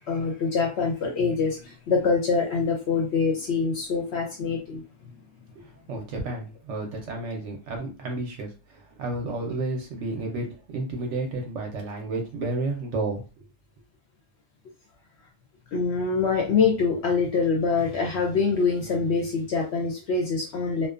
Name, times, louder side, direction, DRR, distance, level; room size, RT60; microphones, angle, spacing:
voice 1, 0.1-4.8 15.7-20.9, left 5 dB, 60° left, 0 dB, 0.7 m, -25 dB
voice 2, 5.6-10.5 10.7-13.4, right 2 dB, 65° right, 2 dB, 0.8 m, -31 dB
2.6 x 2.2 x 2.4 m, 0.32 s
omnidirectional pair, 1.5 m